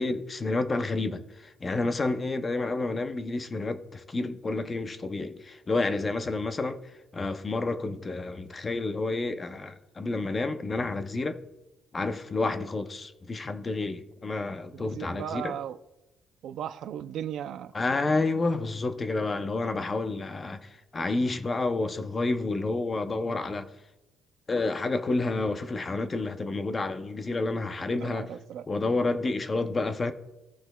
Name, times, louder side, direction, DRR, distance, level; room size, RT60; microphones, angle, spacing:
voice 1, 0.0-6.8 7.1-11.4 11.9-15.5 17.7-20.6 20.9-23.7 24.5-28.3 28.7-30.1, left 3 dB, 20° left, 0.5 m, -29 dB
voice 2, 14.7-15.8 16.4-17.7 23.2-23.4 28.0-28.7 29.8-29.9, right 10 dB, 60° right, 0.4 m, -37 dB
16.5 x 5.9 x 2.2 m
cardioid pair, 155°, 0 cm